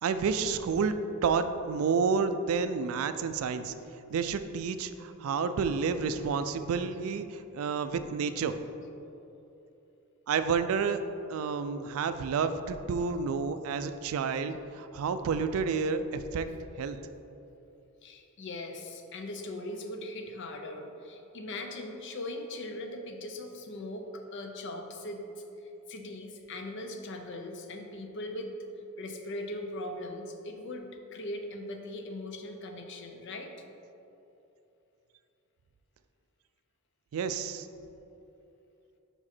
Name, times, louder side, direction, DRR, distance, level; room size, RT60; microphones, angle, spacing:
voice 1, 0.0-3.7 4.1-8.6 10.3-11.0 11.3-17.0 37.1-37.7, right 5 dB, 70° right, 11 dB, 0.3 m, -30 dB
voice 2, 18.0-25.2 25.9-28.5 29.0-33.5, left 1 dB, 55° left, 5 dB, 0.5 m, -40 dB
5.3 x 4.9 x 4.2 m, 2.9 s
head